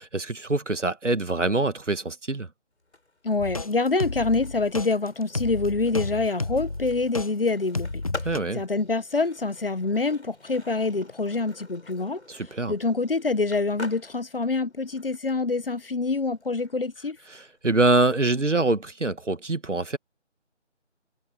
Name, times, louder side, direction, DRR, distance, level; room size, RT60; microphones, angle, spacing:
voice 1, 0.0-2.5 8.2-8.6 12.3-12.7 17.3-20.0, right 2 dB, 80° right, 1.8 m, -25 dB
Skateboard, 2.8-18.7, left 2 dB, 65° left, 7.1 m, -47 dB
voice 2, 3.2-8.0 8.5-12.2 12.7-17.2, left 3 dB, 50° left, 1.1 m, -26 dB
sound 1, 3.4-7.3 7.7-8.4, left 3 dB, 30° left, 1.1 m, -31 dB
figure-of-eight pair, 165°, 36 cm